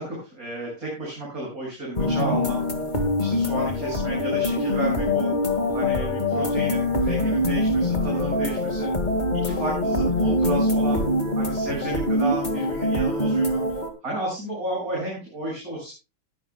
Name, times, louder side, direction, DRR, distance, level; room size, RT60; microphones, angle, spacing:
voice 1, 0.0-2.6 3.2-5.3 5.7-8.9 9.4-11.0 11.4-13.6 14.0-15.9, right 1 dB, 40° right, -4 dB, 7.9 m, -31 dB
sound 1, 2.0-13.9, left 1 dB, 20° left, 2.1 m, -24 dB
21.0 x 12.0 x 2.4 m, 0.30 s
omnidirectional pair, 2.3 m